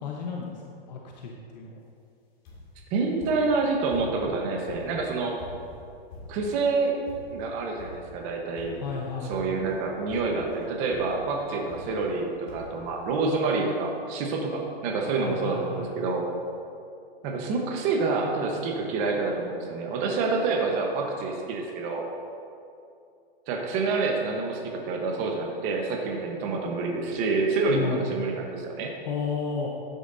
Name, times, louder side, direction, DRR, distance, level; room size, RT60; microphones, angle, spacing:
voice 1, 0.0-0.5 0.9-1.8 8.8-9.4 15.2-15.9 27.7-28.1 29.1-29.7, left 5 dB, 45° left, 0 dB, 1.0 m, -32 dB
sound 1, 2.5-2.8 3.2-4.3 4.7-6.6 7.1-7.5 7.8-8.2 8.6-9.0 9.3-9.8 10.1-10.5 10.9-11.2 11.7-12.2 12.5-12.8 13.6-13.7 13.9-14.0, left 2 dB, 25° left, 2.2 m, -45 dB
voice 2, 2.9-5.4 6.3-6.9 7.3-8.8 9.3-16.2 17.2-22.1 23.5-28.9, right 3 dB, 25° right, 1 dB, 1.0 m, -27 dB
12.0 x 9.2 x 2.7 m, 2.5 s
hypercardioid pair, 160°, 32 cm